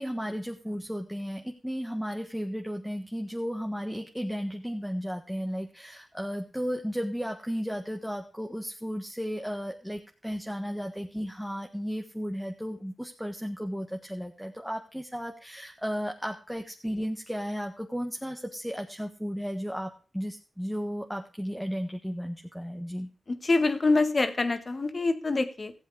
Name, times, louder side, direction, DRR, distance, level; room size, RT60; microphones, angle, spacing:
voice 1, 0.0-23.1, equal, ahead, 2 dB, 1.6 m, -34 dB
voice 2, 23.3-25.7, left 3 dB, 45° left, 8 dB, 1.7 m, -25 dB
15.0 x 7.9 x 5.0 m, 0.35 s
cardioid pair, 55°, 0 cm